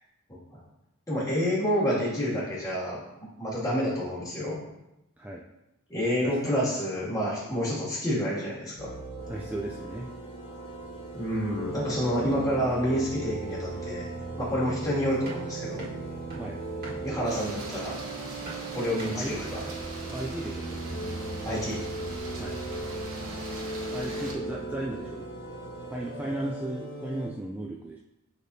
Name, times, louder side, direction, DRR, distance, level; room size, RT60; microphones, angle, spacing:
voice 1, 0.3-0.6 1.1-3.0 3.4-4.6 5.9-8.9 11.1-14.0 14.4-15.8 17.0-18.0 18.7-19.6 21.4-21.8, equal, 15° left, -8 dB, 2.2 m, -28 dB
voice 2, 6.2-6.5 9.3-10.2 14.5-14.7 16.4-16.6 19.1-19.3 20.1-20.8 22.4-22.6 23.9-25.4 25.9-28.0, right 1 dB, 5° right, -2 dB, 0.3 m, -36 dB
sound 1, 8.8-27.3, right 2 dB, 50° left, 1.8 m, -37 dB
sound 2, 14.7-20.5, right 1 dB, 45° right, 1.5 m, -44 dB
sound 3, 17.2-24.3, right 1 dB, 65° right, 1.2 m, -42 dB
10.0 x 3.5 x 2.7 m, 0.92 s
head